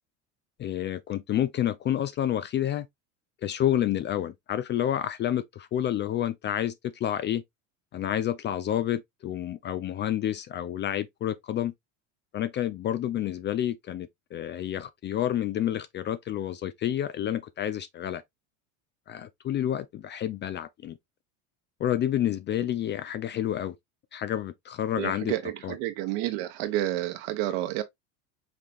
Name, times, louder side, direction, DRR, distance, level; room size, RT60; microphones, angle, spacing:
voice 1, 0.6-2.9 3.4-7.4 7.9-11.7 12.3-18.2 19.1-21.0 21.8-23.8 24.1-25.3 25.6-25.7, left 11 dB, 30° left, 0.3 m, -29 dB
voice 2, 25.0-27.8, right 14 dB, 65° right, 1.2 m, -30 dB
5.7 x 3.3 x 2.5 m
hypercardioid pair, 85°, 40 cm